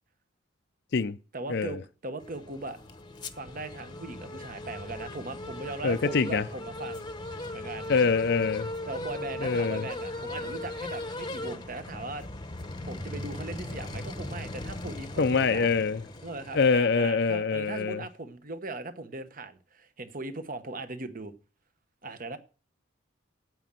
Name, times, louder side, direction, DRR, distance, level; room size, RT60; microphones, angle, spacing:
voice 1, 1.3-2.8 3.4-7.1 7.5-7.9 8.9-12.3 12.8-15.7 16.2-21.3 22.0-22.4, right 2 dB, 45° right, 1.1 m, -39 dB
sound 1, 2.2-16.8, left 2 dB, 20° left, 0.9 m, -38 dB
voice 2, 5.8-6.5 7.9-8.7 9.4-9.8 15.2-16.0 16.5-18.0, left 5 dB, 55° left, 0.5 m, -25 dB
9.3 x 8.7 x 7.5 m
head